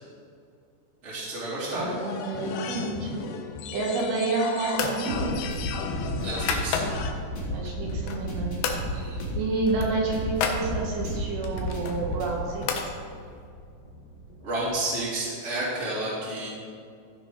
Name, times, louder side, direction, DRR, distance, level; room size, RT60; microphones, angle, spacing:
voice 1, 1.0-1.8 2.3-2.4 6.2-6.8 8.9-9.2 14.4-16.5, right 2 dB, 20° right, -7 dB, 2.8 m, -31 dB
voice 2, 1.7-3.2 3.7-5.4 7.5-8.5 9.3-12.9, right 3 dB, 75° right, -3 dB, 3.7 m, -29 dB
sound 1, 1.8-7.1, left 6 dB, 90° left, 2.9 m, -35 dB
sound 2, 3.8-4.3 4.7-5.0 5.4-7.2 7.7-8.3 8.6-8.8 9.2-9.3 9.6-10.6 11.4-12.9, left 6 dB, 70° left, 2.5 m, -32 dB
sound 3, 5.0-14.7, equal, 30° left, 3.4 m, -33 dB
16.0 x 6.1 x 5.2 m, 2.4 s
omnidirectional pair, 5.0 m